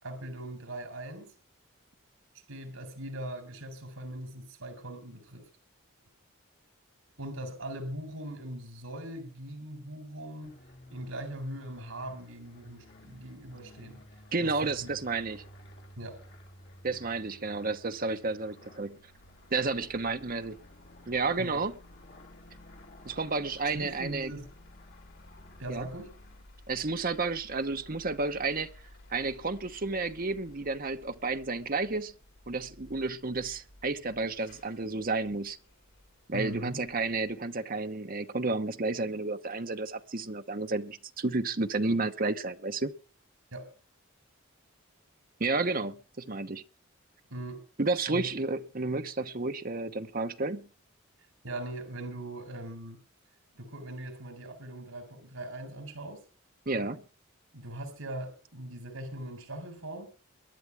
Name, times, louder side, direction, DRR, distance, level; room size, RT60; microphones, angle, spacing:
voice 1, 0.0-1.3 2.5-5.4 7.2-10.5 10.9-14.0 14.4-14.9 16.0-16.2 21.4-21.7 23.7-24.5 25.6-26.1 36.3-36.8 43.5-43.7 47.3-47.6 48.1-48.3 51.4-53.0 53.5-56.2 57.5-60.1, right 1 dB, 80° right, 4.0 m, -40 dB
sound 1, 10.4-26.4, left 1 dB, 55° left, 2.9 m, -54 dB
voice 2, 14.3-15.4 16.8-19.0 19.5-20.6 21.1-21.7 23.0-24.3 25.7-25.9 26.7-28.7 29.1-32.1 32.5-35.6 36.3-42.9 45.4-46.6 47.8-50.7 56.7-57.0, right 3 dB, 45° right, 1.0 m, -31 dB
sound 2, 19.2-37.3, left 1 dB, 80° left, 4.1 m, -56 dB
22.5 x 11.0 x 3.5 m
head